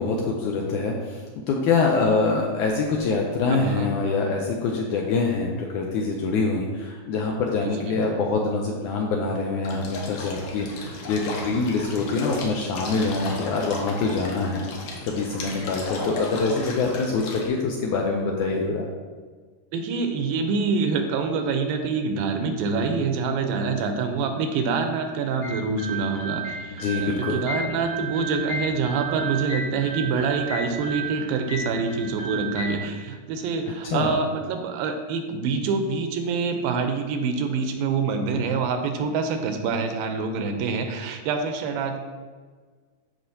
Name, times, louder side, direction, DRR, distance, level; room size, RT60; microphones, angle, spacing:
voice 1, 0.0-14.6 15.0-18.9 26.7-27.4 33.8-34.1, left 4 dB, 80° left, 0 dB, 1.8 m, -25 dB
voice 2, 3.5-3.9 7.6-8.0 19.7-42.0, right 4 dB, 85° right, 6 dB, 2.5 m, -26 dB
sound 1, 9.6-17.5, left 2 dB, 65° left, 2.2 m, -35 dB
sound 2, 25.4-32.7, right 3 dB, 35° left, 1.7 m, -33 dB
13.5 x 5.0 x 2.8 m, 1.5 s
omnidirectional pair, 4.1 m